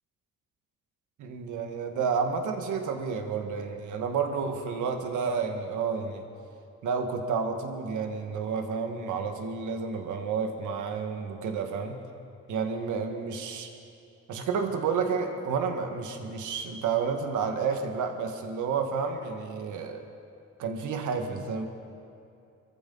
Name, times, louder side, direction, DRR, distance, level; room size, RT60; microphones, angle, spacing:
voice 1, 1.2-6.2 6.8-12.0 12.5-13.7 14.3-20.0 20.6-21.7, right 5 dB, 80° right, 5 dB, 1.7 m, -30 dB
24.0 x 14.5 x 4.0 m, 2.5 s
cardioid pair, 90°, 30 cm